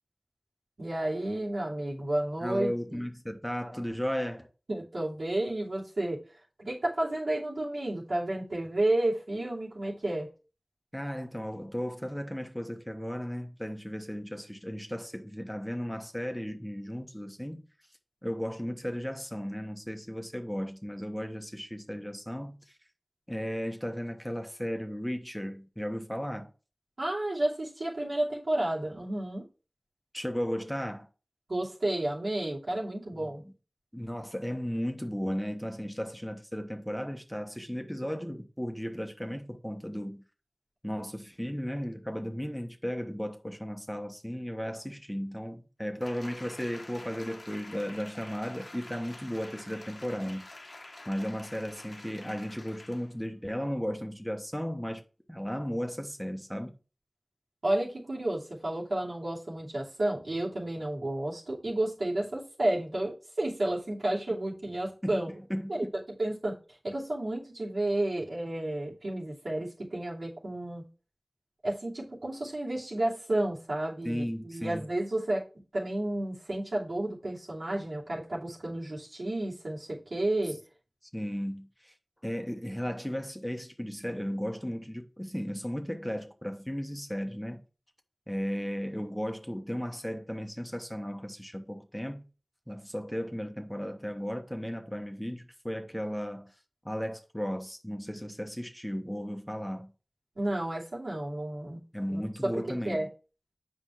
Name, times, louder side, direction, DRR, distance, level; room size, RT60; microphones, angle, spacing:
voice 1, 0.8-3.0 4.7-6.2 6.6-10.3 27.0-29.4 31.5-33.4 57.6-65.3 65.7-65.8 66.2-66.5 66.8-70.8 71.6-75.4 75.7-80.6 100.4-101.8 102.1-103.1, right 1 dB, 90° right, 2.8 m, -31 dB
voice 2, 2.4-4.5 10.9-17.6 18.2-22.6 23.3-26.5 30.1-31.1 33.9-40.2 40.8-50.5 51.1-55.0 55.3-56.7 65.0-65.2 65.5-65.9 74.0-74.8 81.1-81.9 82.2-87.6 88.3-92.2 92.7-96.5 96.8-99.9 101.9-103.1, equal, 5° left, 1.2 m, -35 dB
Applause, 46.0-53.1 53.6-53.7, left 2 dB, 75° left, 1.2 m, -48 dB
8.1 x 5.3 x 3.1 m
wide cardioid pair, 45°, 0 cm